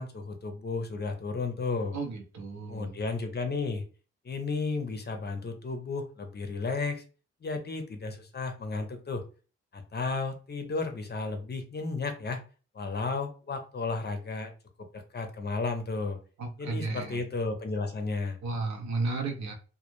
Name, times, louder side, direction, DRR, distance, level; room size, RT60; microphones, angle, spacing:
voice 1, 0.0-2.0 2.7-3.8 4.2-7.0 7.4-9.2 9.7-12.4 12.7-14.5 14.9-16.2 16.6-18.4, left 3 dB, 35° left, 6 dB, 0.6 m, -33 dB
voice 2, 1.9-3.0 16.4-17.2 18.4-19.5, right 3 dB, 70° right, 3 dB, 0.7 m, -33 dB
2.2 x 2.0 x 3.0 m, 0.36 s
supercardioid pair, 50°, 29 cm